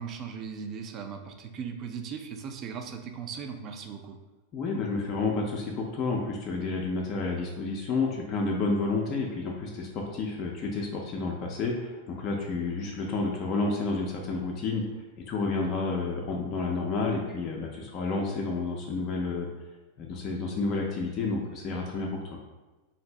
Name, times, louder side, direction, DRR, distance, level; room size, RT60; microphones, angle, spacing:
voice 1, 0.0-4.2, right 6 dB, 35° right, 5 dB, 0.3 m, -38 dB
voice 2, 4.5-19.5 20.0-22.2, left 3 dB, 35° left, -1 dB, 0.4 m, -30 dB
2.6 x 2.5 x 3.1 m, 1.2 s
figure-of-eight pair, 90°, 0 cm